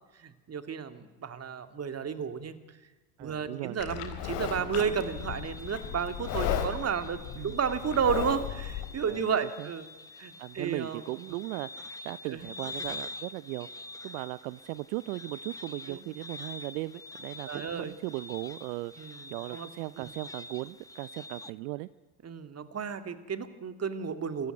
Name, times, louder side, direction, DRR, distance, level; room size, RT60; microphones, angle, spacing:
voice 1, 0.2-2.6 3.2-7.2 7.4-9.9 10.2-11.0 12.3-12.5 15.9-16.0 17.5-17.9 19.0-19.2 19.5-19.7 20.0-20.1 22.2-24.5, right 6 dB, 30° right, 10 dB, 2.2 m, -32 dB
voice 2, 3.2-3.8 7.4-7.6 9.1-9.3 9.6-9.7 10.4-21.9, right 20 dB, 70° right, 18 dB, 0.7 m, -38 dB
Livestock farm animals working animals, 3.8-8.8, left 9 dB, 60° left, 3.8 m, -35 dB
sound 1, 4.7-21.5, left 2 dB, 5° left, 0.8 m, -46 dB
26.0 x 14.5 x 9.5 m, 1.2 s
hypercardioid pair, 75°, 49 cm